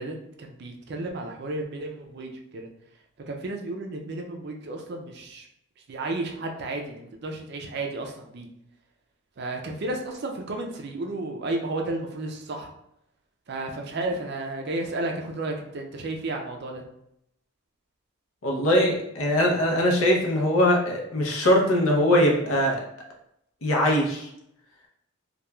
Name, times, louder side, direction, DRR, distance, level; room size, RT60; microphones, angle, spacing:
voice 1, 0.0-2.7 3.3-5.5 5.9-8.5 9.4-12.7 13.5-16.8, right 2 dB, 50° right, 2 dB, 0.4 m, -32 dB
voice 2, 18.4-22.8 23.6-24.3, left 1 dB, 75° left, -1 dB, 0.6 m, -21 dB
3.0 x 2.3 x 2.2 m, 0.78 s
head